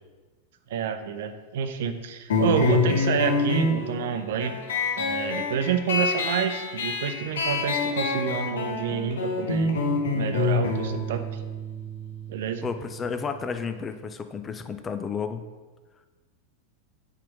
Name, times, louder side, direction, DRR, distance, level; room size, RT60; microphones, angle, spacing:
voice 1, 0.7-4.6 5.0-9.7 10.1-11.4 12.3-12.7, right 7 dB, 55° right, 8 dB, 0.7 m, -28 dB
sound 1, 2.3-13.4, left 3 dB, 60° left, 1.1 m, -27 dB
voice 2, 12.6-15.4, left 6 dB, 20° left, 9 dB, 0.5 m, -32 dB
5.8 x 5.0 x 6.2 m, 1.3 s
figure-of-eight pair, 90°, 0 cm